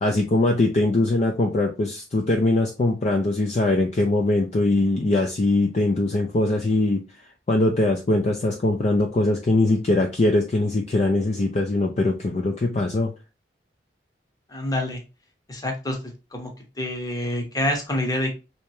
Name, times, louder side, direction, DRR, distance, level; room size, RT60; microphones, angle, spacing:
voice 1, 0.0-7.0 7.5-13.1, left 2 dB, 40° left, 2 dB, 0.4 m, -21 dB
voice 2, 14.5-15.0 15.5-16.0 16.3-16.5 16.8-18.3, left 1 dB, 20° left, 2 dB, 0.8 m, -26 dB
3.2 x 2.8 x 3.1 m, 0.28 s
head